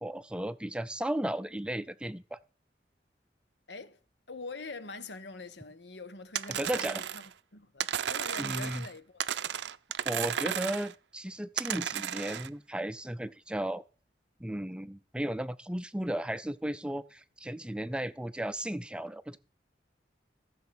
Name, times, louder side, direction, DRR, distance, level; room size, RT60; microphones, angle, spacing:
voice 1, 0.0-2.4 6.5-7.0 8.4-8.9 10.1-13.8 14.4-19.4, right 1 dB, 5° right, 0.5 m, -35 dB
voice 2, 3.7-4.0 4.3-7.2 7.5-9.3, left 3 dB, 80° left, 1.4 m, -44 dB
sound 1, 6.3-7.3 7.8-8.9 9.2-10.9 11.6-12.5, right 9 dB, 80° right, 0.5 m, -34 dB
14.0 x 7.0 x 6.0 m
head